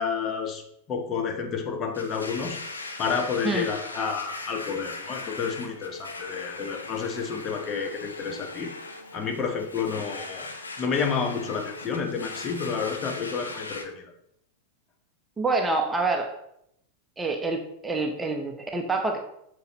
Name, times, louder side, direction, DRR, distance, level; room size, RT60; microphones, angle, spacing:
voice 1, 0.0-2.6 3.0-8.7 9.1-10.5 10.8-14.1, left 6 dB, 30° left, 3 dB, 1.0 m, -30 dB
Domestic sounds home sounds, 1.9-13.8, left 3 dB, 75° left, 0.7 m, -39 dB
voice 2, 15.4-16.4 17.2-19.2, right 3 dB, 10° right, 3 dB, 0.8 m, -27 dB
6.7 x 6.3 x 2.9 m, 0.75 s
figure-of-eight pair, 90°, 0 cm